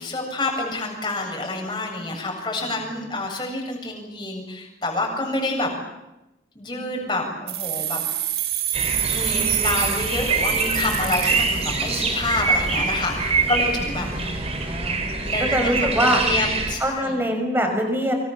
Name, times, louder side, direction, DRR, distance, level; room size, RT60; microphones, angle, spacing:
voice 1, 0.0-5.7 6.6-8.0 8.7-14.4 15.0-15.9 16.1-17.2, left 2 dB, 25° left, 0 dB, 7.6 m, -28 dB
sound 1, 7.5-12.3, right 13 dB, 60° right, 2.5 m, -27 dB
sound 2, 8.7-16.8, right 4 dB, 35° right, 4.7 m, -24 dB
voice 2, 14.0-15.0 15.4-16.2 16.8-18.1, equal, 15° right, 4 dB, 6.1 m, -24 dB
29.5 x 25.5 x 7.1 m, 0.96 s
head